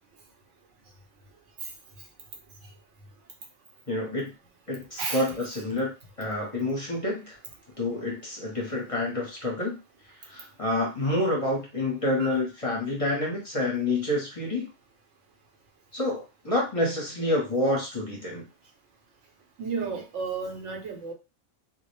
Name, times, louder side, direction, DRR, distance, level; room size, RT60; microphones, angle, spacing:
voice 1, 3.9-4.3 4.7-5.9 6.2-7.4 7.8-9.8 10.3-14.7 15.9-18.4, left 1 dB, 35° left, -2 dB, 0.7 m, -28 dB
voice 2, 19.6-21.1, right 5 dB, 85° right, 3 dB, 1.0 m, -32 dB
2.3 x 2.0 x 3.0 m, 0.28 s
omnidirectional pair, 1.2 m